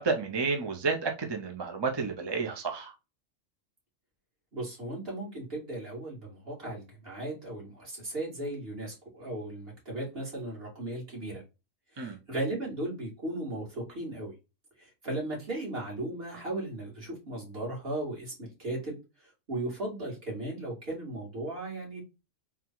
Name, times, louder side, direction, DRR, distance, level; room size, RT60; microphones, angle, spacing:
voice 1, 0.0-2.9 12.0-12.2, right 4 dB, 30° right, 0.5 m, -31 dB
voice 2, 4.5-11.4 11.9-14.3 14.8-19.0 19.5-22.0, right 1 dB, 50° right, 2.3 m, -36 dB
3.8 x 2.3 x 4.4 m
omnidirectional pair, 1.3 m